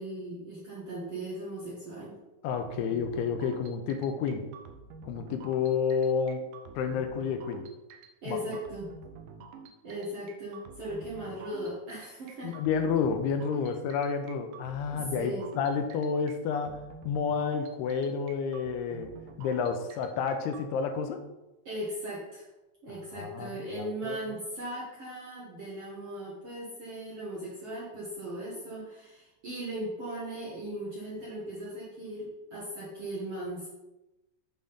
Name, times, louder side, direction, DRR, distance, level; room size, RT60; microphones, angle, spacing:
voice 1, 0.0-2.1 8.2-9.0 9.8-12.6 14.9-15.4 21.7-22.5 22.8-33.7, right 1 dB, 60° right, -6 dB, 1.6 m, -38 dB
voice 2, 2.4-4.5 5.1-6.4 6.8-7.6 8.3-8.4 12.4-16.8 17.1-19.1 19.4-21.2 23.1-24.2, left 6 dB, 90° left, 7 dB, 2.7 m, -30 dB
sound 1, 2.5-20.7, right 5 dB, 80° right, 2.0 m, -49 dB
7.5 x 3.6 x 5.6 m, 0.99 s
omnidirectional pair, 4.6 m